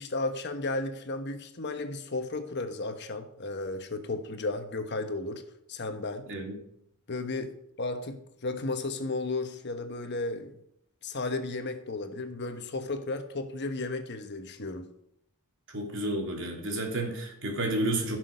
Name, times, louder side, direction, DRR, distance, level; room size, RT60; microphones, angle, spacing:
voice 1, 0.0-5.4 5.7-6.3 7.1-10.6 11.0-14.9, left 2 dB, 50° left, 1.2 m, -34 dB
voice 2, 15.7-18.2, right 1 dB, 60° right, 3.1 m, -31 dB
16.0 x 6.2 x 5.3 m
head